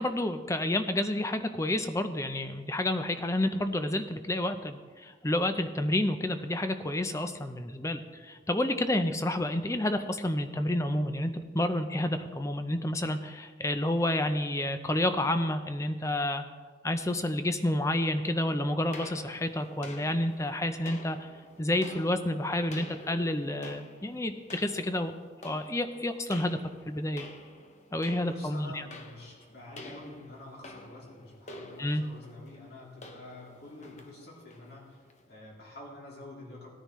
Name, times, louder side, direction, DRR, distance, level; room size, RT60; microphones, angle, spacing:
voice 1, 0.0-16.4 16.8-21.2 21.6-25.1 25.4-26.6 26.9-27.3 27.9-28.8 31.8-32.0, left 1 dB, 15° left, 9 dB, 0.6 m, -29 dB
sound 1, 18.9-35.3, left 2 dB, 35° left, 1.0 m, -49 dB
voice 2, 28.3-36.8, left 1 dB, 55° left, -4 dB, 3.2 m, -48 dB
18.5 x 10.0 x 3.1 m, 1.5 s
head